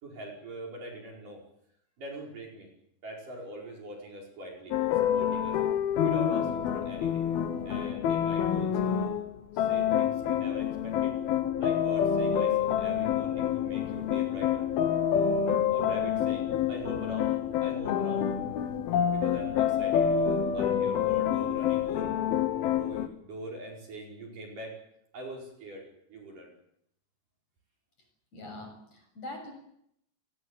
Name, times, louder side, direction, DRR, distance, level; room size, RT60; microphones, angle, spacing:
voice 1, 0.0-1.4 2.0-2.7 3.0-5.6 6.0-7.3 7.6-9.2 9.5-11.2 11.6-14.7 15.7-18.4 19.1-22.1 22.6-24.8 25.1-26.5, right 1 dB, 45° right, -1 dB, 6.4 m, -43 dB
sound 1, 4.7-23.1, left 8 dB, 65° left, 2.8 m, -27 dB
voice 2, 28.3-29.5, left 1 dB, 35° left, 3 dB, 7.8 m, -43 dB
29.5 x 18.0 x 8.1 m, 0.75 s
omnidirectional pair, 5.4 m